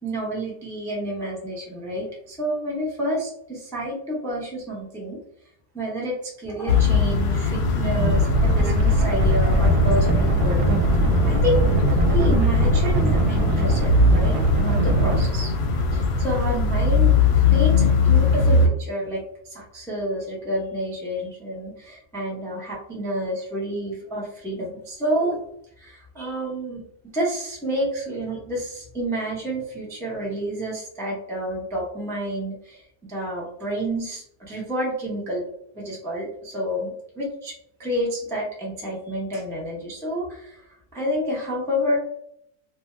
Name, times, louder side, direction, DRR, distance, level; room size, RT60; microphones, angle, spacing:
voice 1, 0.0-5.2 5.7-10.6 10.9-11.0 11.2-11.7 12.0-15.5 15.9-17.2 17.5-25.4 25.8-26.8 27.1-32.8 33.1-35.4 35.7-37.5 37.8-40.7 40.9-42.0, equal, 5° left, -4 dB, 0.3 m, -29 dB
sound 1, 6.7-18.7, left 4 dB, 70° left, 1.0 m, -21 dB
sound 2, 7.8-15.2, right 1 dB, 80° right, 1.1 m, -20 dB
2.6 x 2.3 x 3.1 m, 0.70 s
omnidirectional pair, 1.7 m